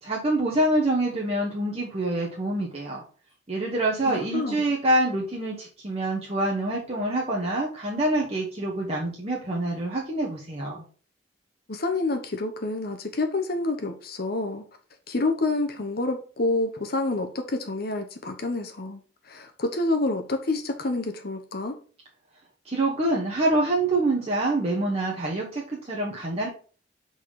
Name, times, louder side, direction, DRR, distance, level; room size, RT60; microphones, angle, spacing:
voice 1, 0.0-3.0 3.5-10.8 22.6-26.5, right 1 dB, 35° right, 1.2 m, -26 dB
voice 2, 4.1-4.6 11.7-14.6 15.1-21.8, left 2 dB, 55° left, 0.9 m, -28 dB
5.9 x 4.2 x 4.7 m
head